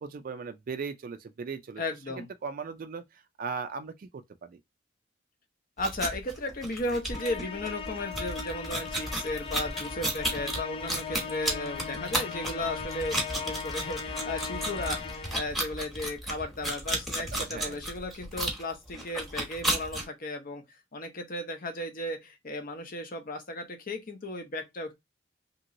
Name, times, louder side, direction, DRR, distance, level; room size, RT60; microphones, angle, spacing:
voice 1, 0.0-1.8 2.2-4.6 17.3-17.8, right 5 dB, 50° right, 0.4 m, -38 dB
voice 2, 1.8-2.3 5.8-20.6 20.9-24.9, left 1 dB, 50° left, 0.8 m, -35 dB
sound 1, 5.8-20.0, right 1 dB, ahead, 1.0 m, -33 dB
Musical instrument, 7.1-15.6, left 6 dB, 30° left, 0.3 m, -38 dB
2.9 x 2.9 x 2.6 m
head